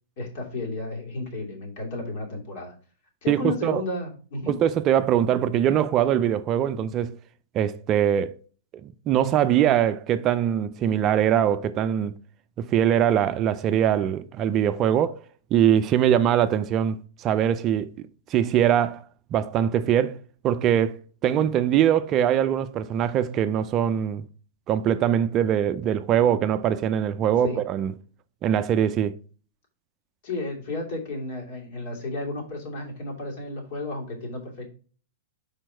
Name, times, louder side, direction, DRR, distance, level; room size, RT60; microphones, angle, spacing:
voice 1, 0.2-2.7 3.2-4.6 27.4-27.6 30.2-34.7, left 2 dB, 55° left, 2.8 m, -33 dB
voice 2, 3.3-3.8 4.5-7.2 7.5-8.4 8.8-12.2 12.6-15.2 15.5-17.9 18.3-19.0 19.3-24.2 24.7-27.9 28.4-29.2, right 10 dB, 35° right, 0.4 m, -22 dB
5.1 x 4.5 x 4.4 m
hypercardioid pair, 115°, 0 cm